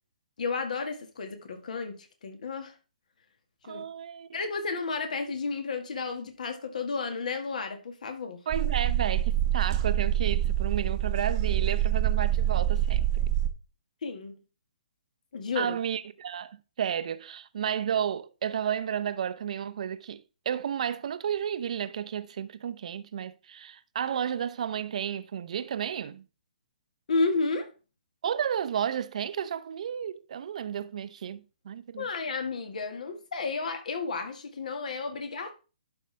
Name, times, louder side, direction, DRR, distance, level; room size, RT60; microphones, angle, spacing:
voice 1, 0.4-2.7 3.7-3.9 4.3-8.4 14.0-14.3 15.3-15.8 27.1-27.7 32.0-35.5, left 4 dB, 60° left, 1.7 m, -32 dB
voice 2, 3.6-4.4 8.5-13.1 15.5-26.2 28.2-32.1, right 9 dB, 55° right, 0.7 m, -32 dB
sound 1, 8.5-13.5, right 11 dB, 30° right, 0.8 m, -26 dB
11.5 x 5.5 x 3.3 m
figure-of-eight pair, 130°, 5 cm